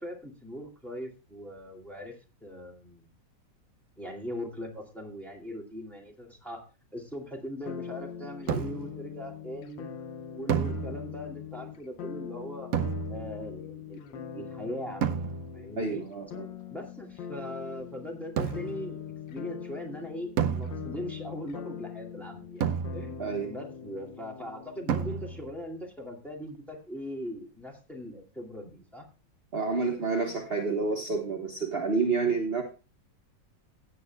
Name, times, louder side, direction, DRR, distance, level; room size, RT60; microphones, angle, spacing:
voice 1, 0.0-3.1 4.0-6.6 6.9-9.9 10.3-12.7 13.1-16.0 16.7-19.0 19.3-29.1, equal, ahead, -1 dB, 2.4 m, -40 dB
sound 1, 7.7-25.5, left 8 dB, 80° left, 1.6 m, -42 dB
sound 2, 8.5-9.0 10.5-11.4 12.7-13.5 15.0-15.7 18.4-18.9 20.4-21.2 22.6-23.4 24.9-25.6, right 7 dB, 60° right, 1.0 m, -31 dB
voice 2, 15.8-16.5 23.2-23.5 29.5-32.6, right 4 dB, 35° right, 1 dB, 1.4 m, -29 dB
16.0 x 8.8 x 2.3 m, 0.31 s
omnidirectional pair, 2.0 m